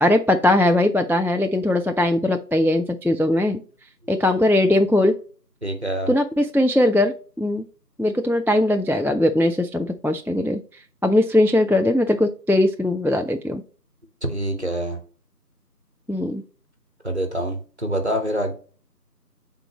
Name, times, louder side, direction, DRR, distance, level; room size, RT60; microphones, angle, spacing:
voice 1, 0.0-3.6 4.1-5.1 6.1-7.6 8.0-10.6 11.0-13.6 16.1-16.4, left 1 dB, 5° right, 5 dB, 0.3 m, -20 dB
voice 2, 5.6-6.1 14.3-15.0 17.0-18.5, right 1 dB, 40° right, 5 dB, 1.1 m, -26 dB
9.3 x 3.8 x 3.0 m, 0.39 s
figure-of-eight pair, 175°, 49 cm